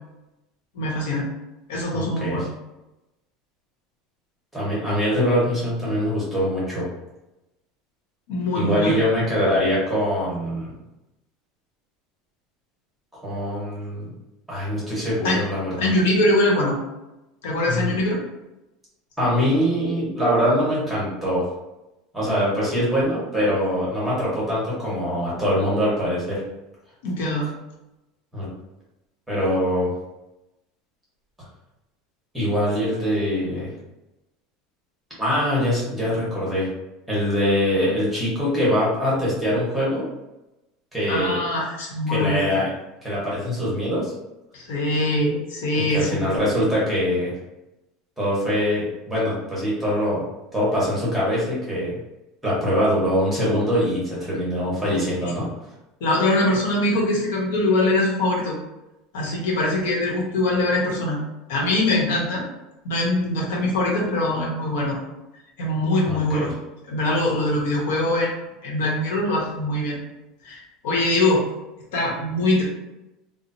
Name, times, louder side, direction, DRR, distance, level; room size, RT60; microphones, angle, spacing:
voice 1, 0.7-1.3 1.7-2.4 8.3-9.0 15.2-15.4 15.8-16.8 17.4-18.2 27.0-27.5 41.1-42.6 44.5-46.5 55.2-55.3 56.0-58.6 59.1-61.2 61.5-62.4 62.8-65.0 65.6-66.5 66.9-70.0 70.4-71.4 71.9-72.7, left 1 dB, 85° left, -2 dB, 0.9 m, -23 dB
voice 2, 1.9-2.5 4.5-6.9 8.5-10.7 13.2-14.1 14.5-15.9 17.6-18.0 19.2-21.4 22.1-26.4 28.3-28.5 29.3-29.9 32.3-33.7 35.2-36.7 37.1-40.1 40.9-41.4 42.1-42.7 43.0-44.1 45.7-47.3 48.2-50.3 50.5-52.0 52.4-55.5 66.0-66.5, equal, 5° right, -8 dB, 0.9 m, -23 dB
3.0 x 2.0 x 2.6 m, 0.97 s
cardioid pair, 180°, 0 cm